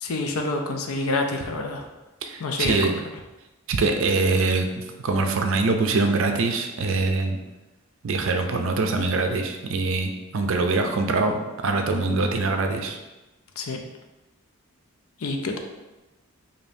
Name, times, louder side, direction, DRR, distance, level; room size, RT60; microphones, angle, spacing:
voice 1, 0.0-1.9 2.4-2.9 13.6-13.8 15.2-15.6, left 2 dB, 75° left, 3 dB, 0.5 m, -27 dB
voice 2, 2.2-2.9 3.7-4.7 5.0-7.4 8.0-13.0, right 3 dB, 60° right, 5 dB, 0.4 m, -23 dB
5.0 x 2.7 x 2.6 m, 1.1 s
head